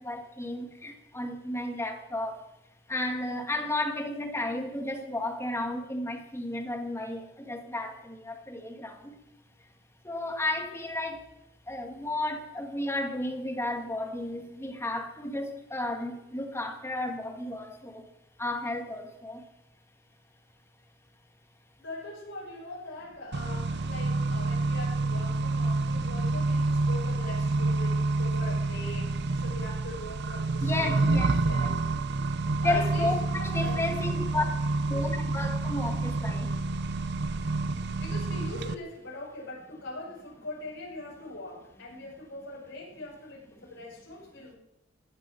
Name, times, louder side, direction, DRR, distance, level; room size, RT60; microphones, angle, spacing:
voice 1, 0.0-2.4 2.9-9.2 10.0-11.2 11.7-18.0 18.4-19.4 30.6-31.7 32.6-33.2 33.5-34.4 34.9-36.5, left 2 dB, 15° left, 2 dB, 1.9 m, -33 dB
voice 2, 21.8-31.9 32.6-34.1 38.0-44.6, left 2 dB, 70° left, -2 dB, 5.8 m, -42 dB
Accelerating revving vroom, 23.3-38.7, right 3 dB, 60° right, 0.6 m, -28 dB
15.5 x 9.2 x 6.3 m, 0.89 s
head